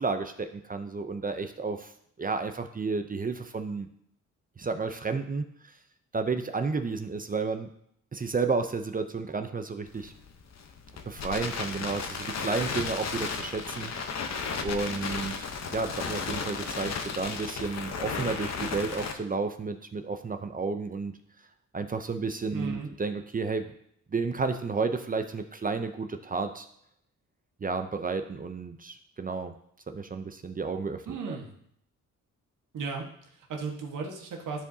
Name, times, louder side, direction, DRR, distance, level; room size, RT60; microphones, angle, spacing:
voice 1, 0.0-1.9 2.2-3.9 4.6-5.4 6.1-7.7 8.1-10.1 11.1-13.9 14.6-15.4 15.7-21.1 21.7-23.7 24.1-26.7 27.6-29.6 29.9-31.4, right 4 dB, 30° right, 8 dB, 0.6 m, -31 dB
Crackle, 9.9-19.1, left 5 dB, 60° left, 0.9 m, -34 dB
voice 2, 22.5-22.9 31.1-31.5 32.7-34.6, right 4 dB, 85° right, 1 dB, 1.5 m, -36 dB
12.5 x 4.6 x 2.8 m, 0.70 s
cardioid pair, 85°, 31 cm